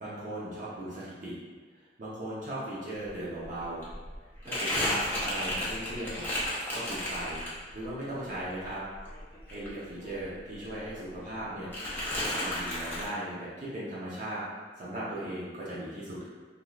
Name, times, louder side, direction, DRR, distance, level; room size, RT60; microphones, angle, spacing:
voice 1, 0.0-1.4 1.7-3.8 4.4-6.3 6.7-7.4 7.7-8.8 9.5-14.4 14.8-16.3, right 1 dB, 45° right, -9 dB, 0.6 m, -38 dB
Crumpling crinkling, 3.1-3.2 3.4-7.9 8.2-10.4 10.6-11.4 11.7-13.1, left 1 dB, 10° left, 0.6 m, -33 dB
3.1 x 2.6 x 2.4 m, 1.4 s
head